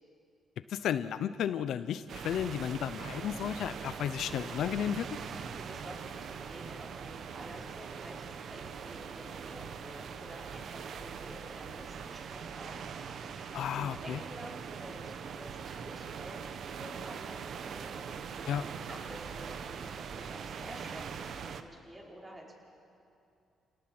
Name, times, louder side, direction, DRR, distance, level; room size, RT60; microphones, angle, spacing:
voice 1, 0.7-5.1 13.5-14.2 18.5-18.6, left 9 dB, 75° left, 13 dB, 0.7 m, -33 dB
sound 1, 2.1-21.6, right 6 dB, 60° right, 1.2 m, -42 dB
voice 2, 5.5-22.5, right 1 dB, 20° right, -2 dB, 5.4 m, -50 dB
28.5 x 18.5 x 7.9 m, 2.7 s
cardioid pair, 90°, 0 cm